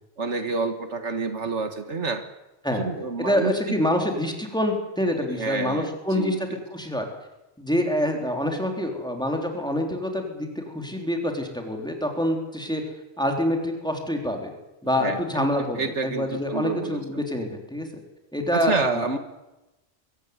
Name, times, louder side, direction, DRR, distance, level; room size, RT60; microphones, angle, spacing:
voice 1, 0.2-2.2 2.7-3.8 5.4-6.6 15.0-17.0 18.5-19.2, right 4 dB, 75° right, 8 dB, 1.9 m, -29 dB
voice 2, 3.2-7.1 7.6-12.8 13.2-14.5 14.8-17.9 18.3-19.2, left 1 dB, 5° left, 2 dB, 3.6 m, -26 dB
23.0 x 15.0 x 9.6 m, 0.99 s
omnidirectional pair, 1.2 m